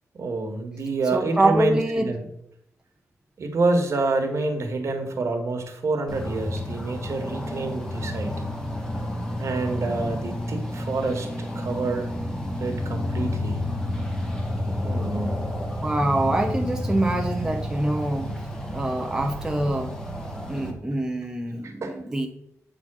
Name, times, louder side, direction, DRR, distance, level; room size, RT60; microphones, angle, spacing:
voice 1, 0.1-1.8 2.0-2.2 3.4-8.4 9.4-11.3 11.5-12.1 12.6-13.6 14.8-15.4 21.6-21.9, right 3 dB, 60° right, 4 dB, 1.5 m, -27 dB
voice 2, 1.1-2.1 15.8-18.3 18.7-19.9 20.4-22.3, right 1 dB, 10° right, 3 dB, 0.7 m, -25 dB
sound 1, 6.1-20.7, left 1 dB, 10° left, 1.3 m, -30 dB
8.7 x 3.8 x 6.1 m, 0.74 s
wide cardioid pair, 145°, 6 cm